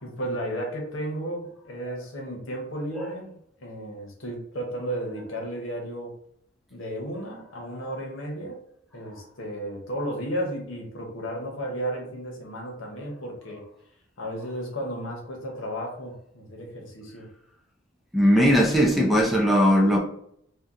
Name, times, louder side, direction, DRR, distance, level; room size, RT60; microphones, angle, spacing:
voice 1, 0.0-6.1 6.7-8.6 8.9-13.6 14.2-17.3, right 1 dB, 80° left, 0.9 m, -33 dB
voice 2, 18.1-20.0, equal, ahead, 0.5 m, -19 dB
2.8 x 2.2 x 3.6 m
head